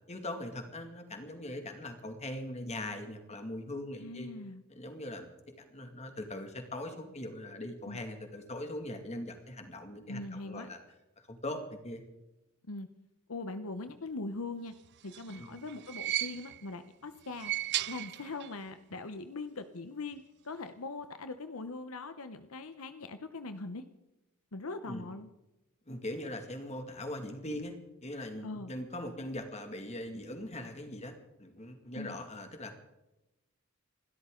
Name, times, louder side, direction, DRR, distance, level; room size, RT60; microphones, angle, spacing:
voice 1, 0.1-4.3 4.7-5.3 5.7-10.8 11.2-12.1 15.4-15.6 24.8-25.0 25.9-32.8, left 1 dB, 30° left, 5 dB, 2.3 m, -41 dB
voice 2, 4.0-4.6 7.9-8.0 10.1-10.7 12.7-12.9 13.3-14.7 15.0-17.5 17.9-23.8 24.5-25.3 28.4-28.7 31.9-32.2, left 3 dB, 75° left, 9 dB, 1.0 m, -41 dB
sound 1, 14.8-16.8 17.2-18.7 18.9-19.0 20.1-20.2, right 14 dB, 50° right, 0.4 m, -36 dB
28.0 x 12.5 x 3.9 m, 0.96 s
head